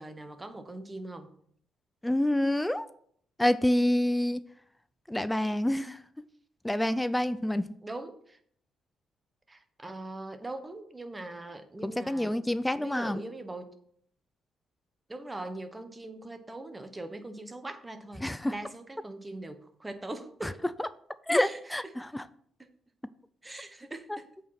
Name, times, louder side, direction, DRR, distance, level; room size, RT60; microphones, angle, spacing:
voice 1, 0.0-1.3 7.8-8.4 9.5-12.4 12.8-13.7 15.1-20.6 21.3-21.6 22.6-22.7 23.4-24.2, right 2 dB, 15° right, 8 dB, 1.2 m, -41 dB
voice 2, 2.0-2.9 3.4-4.4 5.1-6.0 6.6-7.6 11.8-13.2 18.2-18.5 20.4-20.5 20.8-20.9 21.3-22.2, left 1 dB, 5° left, 15 dB, 0.4 m, -27 dB
8.1 x 4.8 x 5.8 m, 0.63 s
cardioid pair, 90°, 0 cm